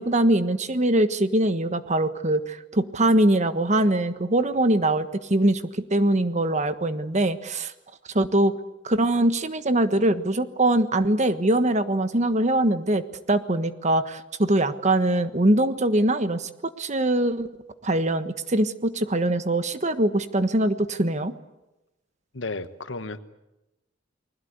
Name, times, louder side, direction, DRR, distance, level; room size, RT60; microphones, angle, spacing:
voice 1, 0.0-5.6 5.9-7.7 8.1-8.5 8.8-13.0 13.3-17.5 17.8-21.3, right 1 dB, 40° right, 11 dB, 1.4 m, -22 dB
voice 2, 22.3-23.2, left 3 dB, 80° left, 11 dB, 1.4 m, -33 dB
29.0 x 21.0 x 8.1 m, 0.98 s
head